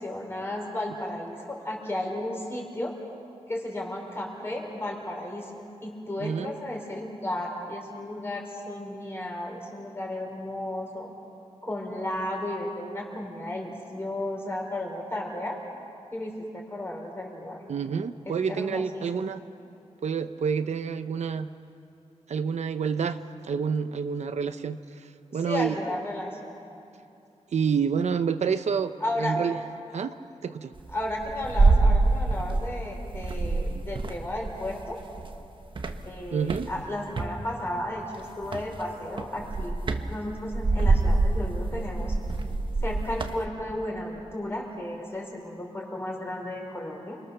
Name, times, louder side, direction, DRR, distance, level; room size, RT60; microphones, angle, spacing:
voice 1, 0.0-3.0 3.5-5.5 5.8-11.1 11.6-15.6 16.1-17.6 18.3-19.3 25.3-26.6 29.0-29.4 30.9-35.0 36.0-42.1 42.8-47.2, left 1 dB, 20° left, -1 dB, 5.1 m, -34 dB
voice 2, 6.2-6.5 17.7-19.4 20.0-21.5 22.3-24.8 25.3-25.8 27.5-28.9 29.2-29.5 29.9-30.2 30.4-30.7 36.3-36.7, right 6 dB, 75° right, 10 dB, 0.8 m, -28 dB
sound 1, 30.8-32.8 33.1-35.4 35.8-37.3 38.4-38.8 39.2-43.4, right 3 dB, 45° right, 1.3 m, -25 dB
29.0 x 23.5 x 6.8 m, 2.7 s
wide cardioid pair, 145°, 12 cm